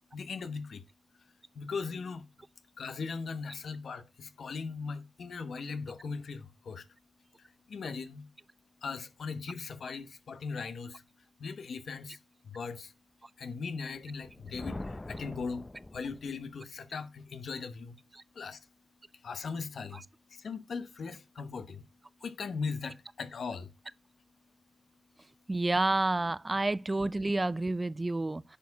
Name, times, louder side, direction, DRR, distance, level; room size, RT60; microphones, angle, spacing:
voice 1, 0.1-0.8 1.5-2.2 2.8-6.9 7.7-8.3 8.8-11.0 11.4-12.2 12.4-12.9 13.4-15.7 15.9-18.0 18.3-18.6 19.2-20.0 20.3-21.9 22.2-23.7, left 5 dB, 80° left, 1.0 m, -39 dB
Thunder, 14.1-16.5, left 2 dB, 25° left, 0.7 m, -43 dB
voice 2, 25.5-28.6, right 2 dB, 30° right, 0.6 m, -29 dB
10.5 x 4.6 x 4.7 m
cardioid pair, 70°, 0 cm